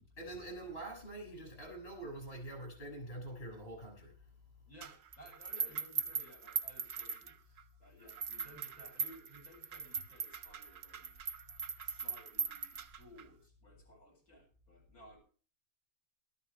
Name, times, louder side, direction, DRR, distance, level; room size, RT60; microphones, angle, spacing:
voice 1, 0.2-4.3, right 2 dB, 30° left, 7.4 m, -45 dB
voice 2, 4.7-11.2 11.8-15.2, equal, 50° left, 8.0 m, -58 dB
sound 1, 4.8-7.6 8.1-13.2, right 6 dB, 55° right, 1.1 m, -40 dB
18.0 x 13.5 x 3.5 m
omnidirectional pair, 1.9 m